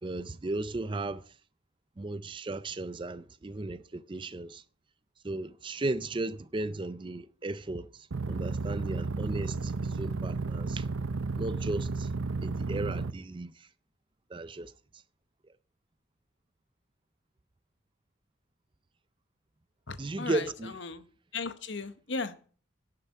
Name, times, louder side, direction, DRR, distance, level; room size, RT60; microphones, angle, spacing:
voice 1, 0.0-1.3 2.0-4.6 5.2-10.9 11.4-12.1 12.4-13.7 14.3-14.7 20.0-20.8, right 2 dB, 25° right, 0.5 m, -35 dB
sound 1, 8.1-13.1, right 3 dB, 85° right, 0.7 m, -33 dB
voice 2, 19.9-21.1 21.3-22.3, left 4 dB, 60° left, 1.1 m, -36 dB
11.0 x 6.7 x 8.4 m
head